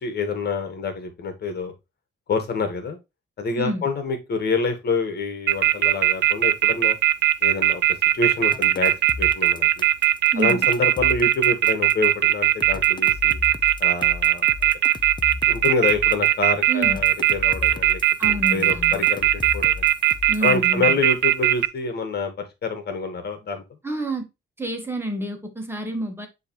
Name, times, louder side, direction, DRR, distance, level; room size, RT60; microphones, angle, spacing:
voice 1, 0.0-1.7 2.3-3.0 3.4-7.0 7.4-7.8 8.1-9.8 10.4-13.4 13.8-14.7 15.5-19.9 20.4-23.6, left 4 dB, 55° left, 7 dB, 1.6 m, -27 dB
voice 2, 3.6-3.9 10.3-10.7 16.7-17.0 18.2-19.1 20.3-21.0 23.8-24.3 24.6-26.3, right 1 dB, 10° right, 3 dB, 1.8 m, -29 dB
sound 1, 5.5-21.7, right 13 dB, 65° right, 0.5 m, -18 dB
sound 2, 8.5-12.1 12.6-16.3 16.8-20.6, left 4 dB, 25° left, 0.7 m, -36 dB
9.7 x 3.2 x 3.1 m, 0.23 s
cardioid pair, 90°, 20 cm